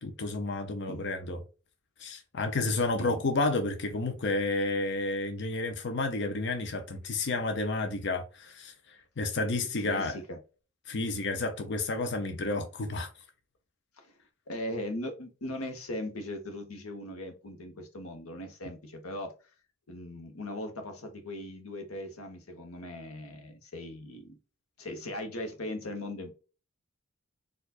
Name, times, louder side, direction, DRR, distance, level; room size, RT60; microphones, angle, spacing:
voice 1, 0.0-1.4 2.0-10.2 10.9-13.1, left 2 dB, 55° left, 0.6 m, -31 dB
voice 2, 9.8-10.4 14.0-14.1 14.5-19.3 19.9-24.4 24.8-26.3, left 1 dB, 85° left, 1.0 m, -39 dB
4.5 x 2.4 x 2.4 m
head